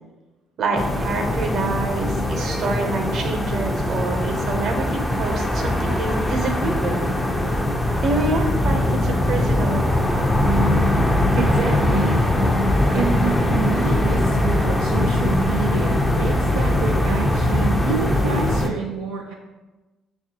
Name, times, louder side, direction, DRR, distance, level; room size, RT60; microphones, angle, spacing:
voice 1, 0.6-7.0 8.0-10.0, right 3 dB, 55° right, 3 dB, 0.7 m, -26 dB
sound 1, 0.8-18.7, left 1 dB, 10° left, 0.5 m, -21 dB
voice 2, 11.3-12.2 12.9-19.3, right 5 dB, 85° right, -2 dB, 0.4 m, -28 dB
5.7 x 2.4 x 2.8 m, 1.1 s
supercardioid pair, 70°, 0 cm